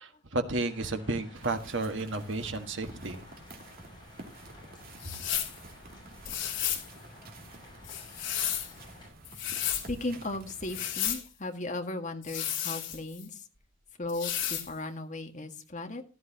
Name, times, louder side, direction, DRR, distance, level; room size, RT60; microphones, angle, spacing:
voice 1, 0.0-3.2, right 2 dB, 70° right, 1.6 m, -32 dB
sound 1, 0.7-9.1, left 2 dB, 25° left, 6.8 m, -54 dB
sound 2, 1.3-10.9, right 2 dB, 50° right, 2.7 m, -50 dB
sound 3, 5.0-5.6 6.2-6.9 7.8-8.7 9.2-9.9 10.6-11.2 12.2-13.3 14.1-14.7, left 11 dB, 70° left, 3.0 m, -33 dB
voice 2, 9.6-13.4 14.0-16.0, left 2 dB, 40° left, 1.8 m, -36 dB
16.0 x 12.0 x 2.9 m
head